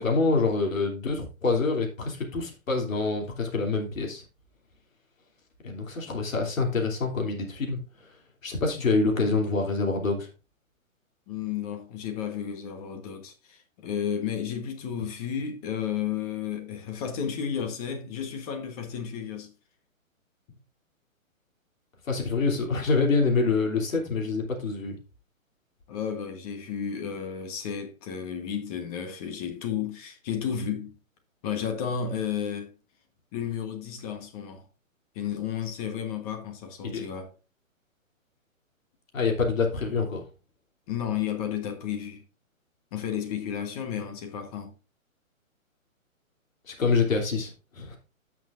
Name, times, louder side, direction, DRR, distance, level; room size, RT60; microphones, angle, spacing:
voice 1, 0.0-4.2 5.6-7.8 8.4-10.3 22.1-25.0 36.8-37.1 39.1-40.2 46.7-48.0, left 4 dB, 70° left, 3.0 m, -26 dB
voice 2, 11.3-19.5 25.9-31.0 31.4-32.7 33.3-34.6 35.1-37.3 40.9-42.2 42.9-44.7, left 8 dB, 25° left, 1.3 m, -32 dB
13.0 x 6.0 x 2.5 m
hypercardioid pair, 145°, 41 cm